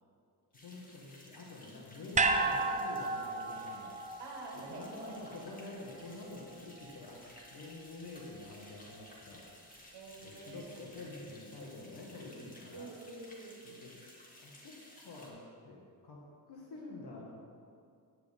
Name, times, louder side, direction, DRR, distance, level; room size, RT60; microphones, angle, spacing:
sound 1, 0.5-15.3, left 1 dB, 20° left, 2.0 m, -57 dB
voice 1, 0.6-4.0 4.5-9.5 10.2-12.9 13.7-17.4, left 2 dB, 65° left, -3 dB, 1.7 m, -48 dB
sound 2, 2.1-6.5 6.8-6.9, right 3 dB, 20° right, 0.6 m, -34 dB
voice 2, 4.2-5.2 9.9-10.7 12.7-13.6, right 3 dB, 70° right, 0 dB, 1.9 m, -47 dB
10.0 x 9.3 x 3.6 m, 2.3 s
cardioid pair, 100°, 41 cm